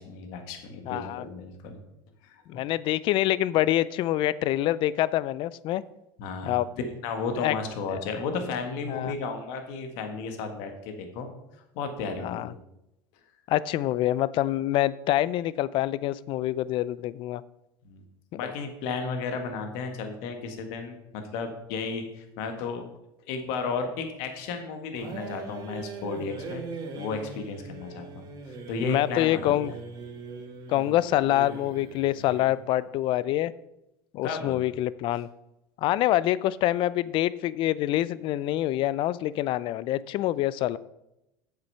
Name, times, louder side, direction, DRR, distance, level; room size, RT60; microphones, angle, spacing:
voice 1, 0.0-1.8 2.2-2.7 6.2-6.6 7.0-11.3 11.7-12.6 17.9-18.0 18.3-22.8 23.3-26.6 26.9-29.8 34.2-34.6, left 4 dB, 70° left, 6 dB, 1.7 m, -34 dB
voice 2, 0.9-1.2 2.5-5.8 6.4-6.7 7.4-7.5 7.9-8.0 8.9-9.1 12.2-12.5 13.5-17.4 18.4-18.5 28.8-29.7 30.7-33.5 34.1-35.3 35.8-40.8, left 14 dB, 50° left, 18 dB, 0.4 m, -26 dB
sound 1, 24.9-32.6, right 4 dB, 40° right, 2.4 m, -40 dB
8.0 x 6.9 x 5.6 m, 0.89 s
supercardioid pair, 125°, 11 cm